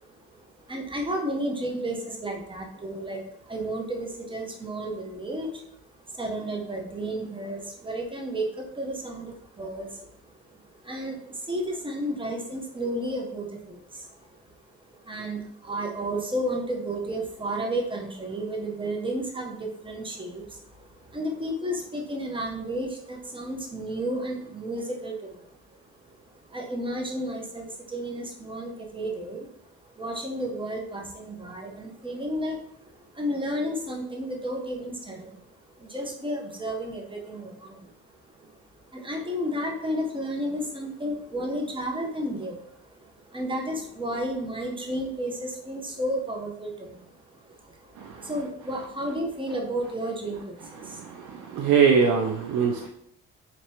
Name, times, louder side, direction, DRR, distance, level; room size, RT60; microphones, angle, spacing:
voice 1, 0.0-5.6 6.1-14.6 14.9-26.2 26.5-29.6 29.8-32.6 32.9-37.9 38.4-38.6 38.9-51.7, right 1 dB, 15° right, 0 dB, 0.9 m, -33 dB
voice 2, 51.3-52.9, right 6 dB, 75° right, 2 dB, 0.5 m, -22 dB
4.4 x 2.9 x 2.9 m, 0.73 s
cardioid pair, 90°, 30 cm